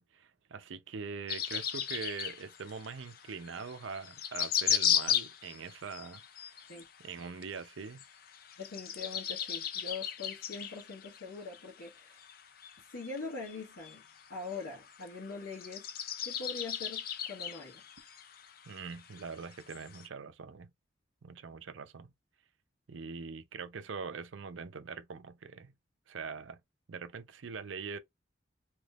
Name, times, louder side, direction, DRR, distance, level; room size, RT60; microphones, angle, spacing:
voice 1, 0.0-6.2 7.0-8.0 18.7-20.7 21.2-22.1 22.9-25.7 26.1-26.6 26.9-28.0, right 5 dB, 80° right, 0.5 m, -43 dB
sound 1, 1.3-20.1, left 9 dB, 50° left, 0.4 m, -36 dB
voice 2, 8.6-12.2 12.9-14.0 14.3-15.8 16.2-17.8, left 4 dB, 80° left, 1.4 m, -43 dB
3.4 x 3.1 x 2.3 m
head